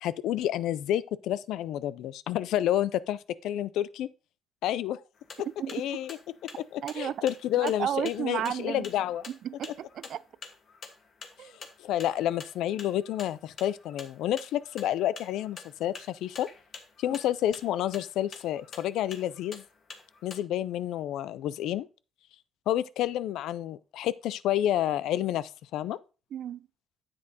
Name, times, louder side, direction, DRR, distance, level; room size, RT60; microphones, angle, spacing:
voice 1, 0.0-4.1 4.6-5.0 5.4-6.2 6.4-9.3 11.8-16.5 17.0-19.6 20.2-21.9 22.7-26.0, left 12 dB, 85° left, 0.4 m, -29 dB
sound 1, 5.2-20.4, left 4 dB, 55° left, 1.3 m, -47 dB
voice 2, 6.8-7.2 7.6-8.9 9.3-10.2 11.4-11.6 26.3-26.7, right 10 dB, 70° right, 0.4 m, -33 dB
9.5 x 7.7 x 2.7 m
cardioid pair, 90°, 0 cm